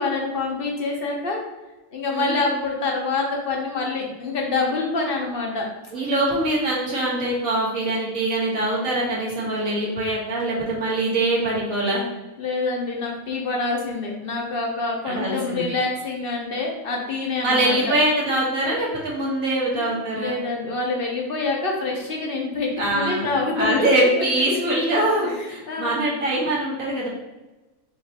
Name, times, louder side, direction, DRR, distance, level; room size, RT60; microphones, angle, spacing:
voice 1, 0.0-1.4 1.9-5.7 12.4-17.9 19.7-19.9 20.2-23.9 24.2-24.3 25.4-25.9, left 3 dB, 50° left, 0 dB, 0.8 m, -26 dB
voice 2, 2.1-2.4 5.9-12.0 15.0-15.6 17.4-20.4 22.8-23.3 23.6-27.1, right 1 dB, 70° right, -5 dB, 1.6 m, -23 dB
5.0 x 3.1 x 2.8 m, 1.1 s
omnidirectional pair, 1.5 m